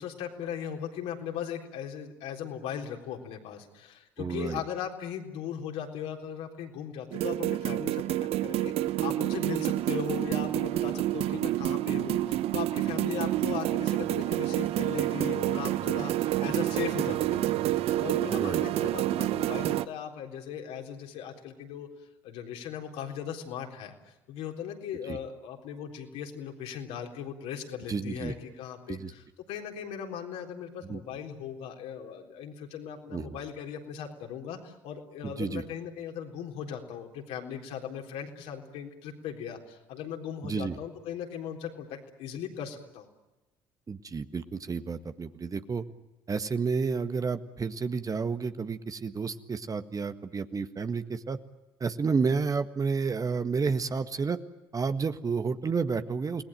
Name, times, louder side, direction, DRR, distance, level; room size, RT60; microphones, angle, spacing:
voice 1, 0.0-21.9 22.2-43.1, left 8 dB, 65° left, 2 dB, 3.9 m, -38 dB
voice 2, 4.2-4.6 18.3-18.6 25.1-25.2 27.9-28.3 28.9-29.1 30.8-31.0 33.1-33.4 35.2-35.6 40.4-40.7 43.9-45.8 46.3-51.4 51.8-54.4 54.7-56.4, right 5 dB, 30° right, 10 dB, 1.6 m, -30 dB
sound 1, 7.1-19.8, right 14 dB, 60° right, 0.9 m, -28 dB
29.5 x 19.5 x 9.0 m, 1.0 s
hypercardioid pair, 55°, 11 cm